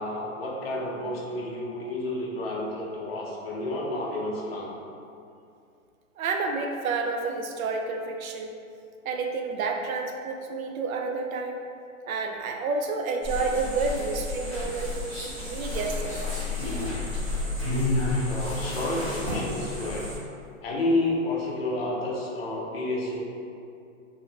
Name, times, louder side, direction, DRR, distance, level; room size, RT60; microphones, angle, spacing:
voice 1, 0.0-4.7 18.2-20.1 20.6-23.2, left 2 dB, 45° left, -3 dB, 0.6 m, -30 dB
voice 2, 6.2-8.6 9.0-11.6 12.1-16.2, right 4 dB, 90° right, 3 dB, 0.5 m, -30 dB
sound 1, 13.2-20.2, left 2 dB, 20° right, 0.7 m, -30 dB
2.7 x 2.5 x 2.8 m, 2.5 s
hypercardioid pair, 160°, 40 cm